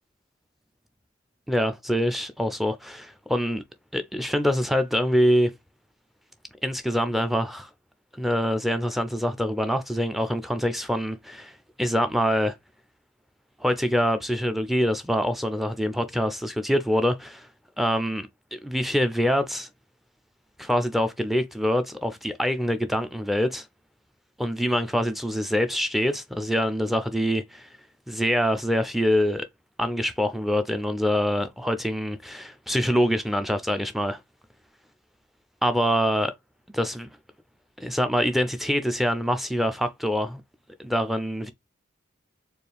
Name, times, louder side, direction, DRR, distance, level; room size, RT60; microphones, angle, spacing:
voice 1, 1.5-3.6 3.9-5.5 6.6-7.7 8.2-12.5 13.6-17.5 17.8-19.7 20.6-23.7 24.4-27.7 28.1-29.5 29.8-34.2 35.6-36.3 36.7-37.1 37.8-40.4 40.8-41.5, equal, ahead, 0.4 m, -25 dB
4.3 x 2.3 x 3.4 m
head